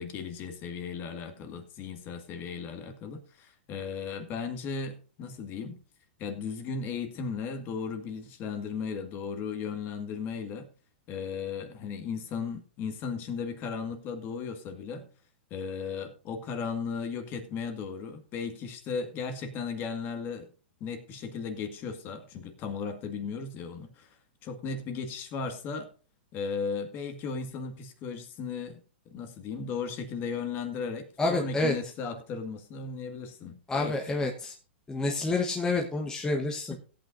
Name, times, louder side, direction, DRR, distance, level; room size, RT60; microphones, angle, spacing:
voice 1, 0.0-5.8 6.2-10.7 11.1-15.1 15.5-20.5 20.8-24.2 24.4-25.9 26.3-34.2 36.7-36.8, left 5 dB, 35° left, 7 dB, 1.9 m, -36 dB
voice 2, 31.2-31.7 33.7-34.5 34.9-36.7, left 2 dB, 10° left, 1 dB, 1.2 m, -28 dB
17.5 x 8.7 x 2.7 m, 0.36 s
hypercardioid pair, 140°, 6 cm